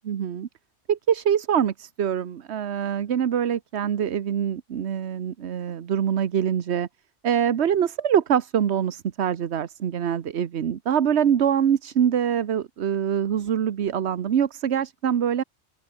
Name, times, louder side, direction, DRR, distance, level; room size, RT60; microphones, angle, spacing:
voice 1, 0.0-0.5 0.9-6.9 7.2-15.4, right 8 dB, 60° right, 1.2 m, -24 dB
open air
omnidirectional pair, 1.3 m